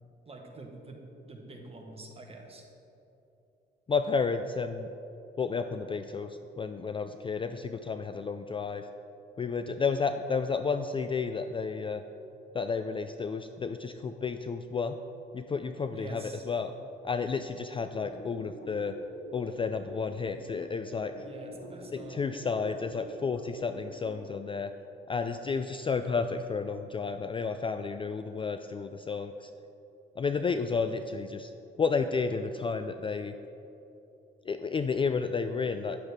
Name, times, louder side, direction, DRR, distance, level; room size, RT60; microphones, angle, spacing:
voice 1, 0.2-2.7 15.9-16.5 21.1-22.2, right 2 dB, 30° right, 1 dB, 1.6 m, -46 dB
voice 2, 3.9-4.9 5.4-8.9 9.4-12.0 12.5-15.0 15.3-16.7 17.0-19.0 19.3-21.1 21.9-24.7 25.1-29.5 30.2-31.5 31.8-33.3 34.5-36.0, left 5 dB, 25° left, 8 dB, 0.3 m, -31 dB
sound 1, 18.0-24.2, left 1 dB, 50° left, 1.8 m, -46 dB
9.9 x 8.9 x 3.6 m, 2.9 s
cardioid pair, 90°, 20 cm